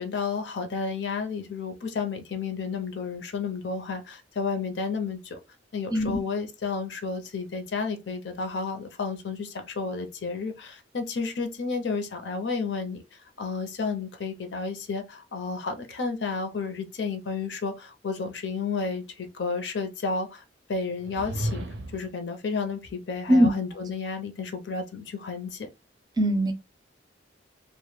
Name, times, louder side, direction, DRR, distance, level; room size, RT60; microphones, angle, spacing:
voice 1, 0.0-5.4 5.7-13.0 13.4-20.4 20.7-21.7 21.9-25.7, left 4 dB, 70° left, 0.5 m, -31 dB
sound 1, 21.0-22.2, right 1 dB, 80° right, 0.6 m, -33 dB
voice 2, 26.2-26.5, equal, 20° right, 0.4 m, -20 dB
2.1 x 2.1 x 3.0 m
head